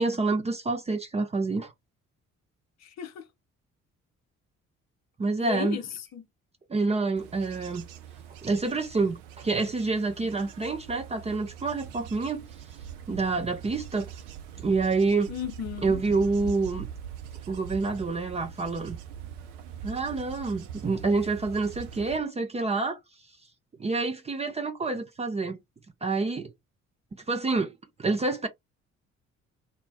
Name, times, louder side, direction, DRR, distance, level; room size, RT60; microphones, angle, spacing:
voice 1, 0.0-1.7 5.2-5.8 6.7-7.8 8.4-12.4 13.1-14.1 14.6-15.3 15.8-16.9 17.5-19.0 19.8-23.0 23.8-25.6 26.0-26.5 27.3-28.5, right 3 dB, 15° right, 0.5 m, -27 dB
voice 2, 2.8-3.2 5.4-6.2 15.3-16.0, left 9 dB, 45° left, 0.6 m, -35 dB
Bird / Insect / Wind, 7.2-22.2, right 9 dB, 70° right, 0.6 m, -42 dB
2.4 x 2.0 x 3.3 m
figure-of-eight pair, 45°, 38 cm